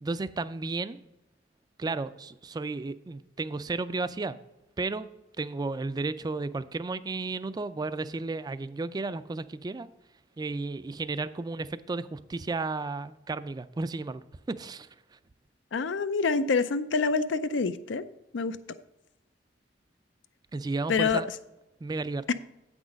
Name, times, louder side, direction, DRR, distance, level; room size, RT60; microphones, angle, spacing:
voice 1, 0.0-1.0 1.8-4.4 4.8-5.1 5.4-9.9 10.4-14.9 20.5-21.3 21.8-22.2, right 3 dB, 20° right, 14 dB, 0.3 m, -33 dB
voice 2, 15.7-18.0 18.3-18.6 20.9-21.2 22.3-22.4, left 4 dB, 80° left, 12 dB, 0.5 m, -26 dB
8.6 x 6.1 x 5.1 m, 0.94 s
head